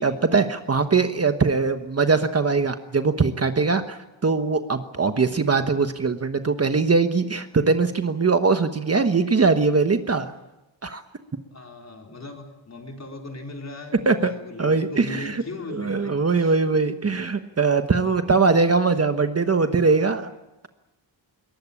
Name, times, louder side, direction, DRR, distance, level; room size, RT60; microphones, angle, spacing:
voice 1, 0.0-10.3 10.8-11.0 14.1-14.3 14.6-15.4 15.7-20.3, right 4 dB, 35° right, 8 dB, 1.2 m, -21 dB
voice 2, 11.5-16.6, left 2 dB, 35° left, 2 dB, 4.2 m, -38 dB
22.0 x 19.5 x 8.7 m, 0.96 s
wide cardioid pair, 125°, 44 cm